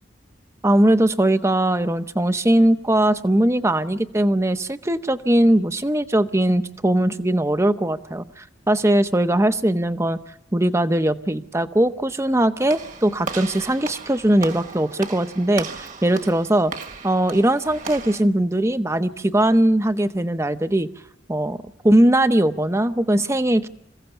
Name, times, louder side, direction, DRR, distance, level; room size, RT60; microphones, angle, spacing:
voice 1, 0.6-10.2 10.5-16.7 17.0-20.9 21.3-21.6 21.8-23.7, right 1 dB, 15° right, 11 dB, 0.8 m, -20 dB
Walk footsteps / Slam, 12.7-18.2, right 4 dB, 45° right, 1.5 m, -36 dB
27.0 x 16.0 x 6.9 m, 0.86 s
head